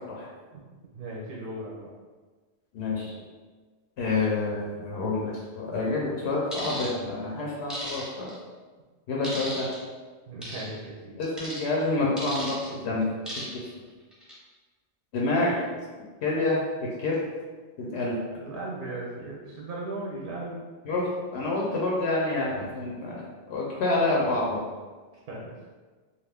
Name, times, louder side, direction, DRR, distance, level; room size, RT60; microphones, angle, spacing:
voice 1, 0.9-1.9 10.3-11.2 18.4-20.6 25.3-25.6, right 2 dB, 60° right, -4 dB, 0.6 m, -37 dB
voice 2, 2.7-3.1 4.0-8.3 9.1-9.7 11.2-13.0 13.4-13.7 15.1-15.6 16.2-17.2 17.8-18.2 20.9-24.7, left 2 dB, 80° left, -4 dB, 0.9 m, -28 dB
sound 1, 6.5-6.9 7.7-8.3 9.2-9.8 10.4-10.7 11.4-11.6 12.2-12.7 13.3-13.7 14.1-14.3, equal, ahead, 0.7 m, -36 dB
2.4 x 2.3 x 3.4 m, 1.4 s
omnidirectional pair, 1.1 m